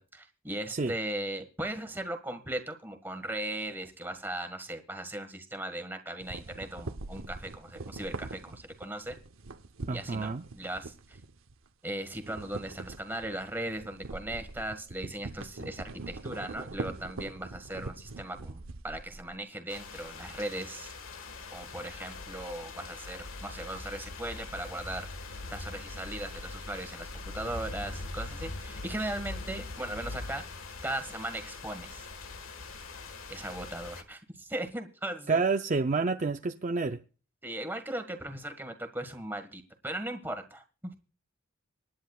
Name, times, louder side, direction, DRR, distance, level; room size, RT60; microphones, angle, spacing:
voice 1, 0.0-9.1 9.9-11.2 11.8-20.9 21.5-25.1 25.5-27.1 27.3-30.4 30.8-32.1 33.3-35.4 37.4-40.6, right 1 dB, 10° right, 7 dB, 1.6 m, -38 dB
sound 1, 6.2-11.7 12.0-19.4, right 3 dB, 75° right, 0.8 m, -43 dB
voice 2, 9.9-10.4 35.3-37.0, right 4 dB, 35° right, 6 dB, 0.5 m, -28 dB
sound 2, 19.7-34.0, left 3 dB, 75° left, 1.6 m, -42 dB
25.5 x 10.5 x 2.4 m, 0.36 s
head